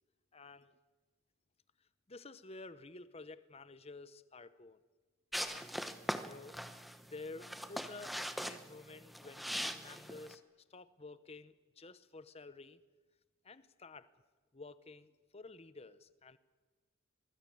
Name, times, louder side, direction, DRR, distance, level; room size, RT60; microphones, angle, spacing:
voice 1, 0.3-0.7 2.1-4.8 5.4-5.7 6.2-10.4 10.7-12.8 13.4-14.1 14.5-16.4, left 3 dB, 30° left, 14 dB, 0.9 m, -52 dB
sound 1, 5.3-10.3, equal, ahead, 0.9 m, -41 dB
23.0 x 19.5 x 8.7 m, 1.3 s
head